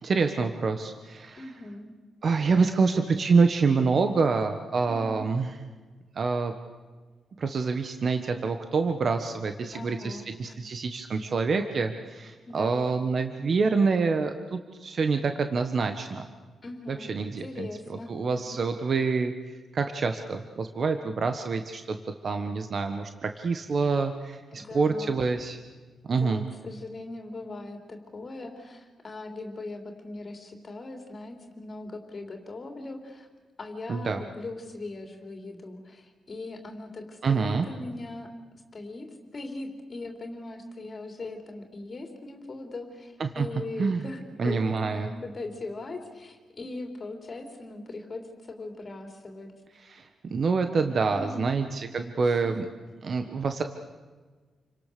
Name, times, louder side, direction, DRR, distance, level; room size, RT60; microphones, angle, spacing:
voice 1, 0.0-1.4 2.2-5.5 6.1-6.5 7.4-16.3 16.9-19.3 19.7-22.0 22.2-25.6 26.0-26.5 33.9-34.2 37.2-37.7 43.2-43.5 43.8-44.0 44.4-45.1 49.8-52.6 53.0-53.6, right 4 dB, 40° right, 6 dB, 1.4 m, -26 dB
voice 2, 1.3-1.9 4.9-5.2 9.7-10.7 12.5-12.9 16.6-17.1 17.4-18.1 24.5-25.2 26.1-33.3 33.6-38.3 38.7-39.1 39.3-49.5 51.1-51.5 52.2-52.5, left 2 dB, 30° left, 4 dB, 3.4 m, -40 dB
29.0 x 25.0 x 6.9 m, 1.4 s
wide cardioid pair, 160°, 0 cm